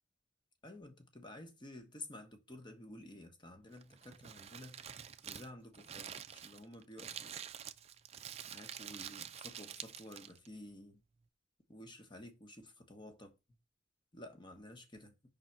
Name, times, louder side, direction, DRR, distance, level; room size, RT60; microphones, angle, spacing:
voice 1, 0.6-4.8 5.2-7.4 8.4-11.0 11.7-13.3 14.1-15.1, left 1 dB, 25° left, 1.1 m, -52 dB
Crumpling crinkling, 3.7-10.5, right 9 dB, 35° right, 0.4 m, -48 dB
5.3 x 3.9 x 5.8 m
head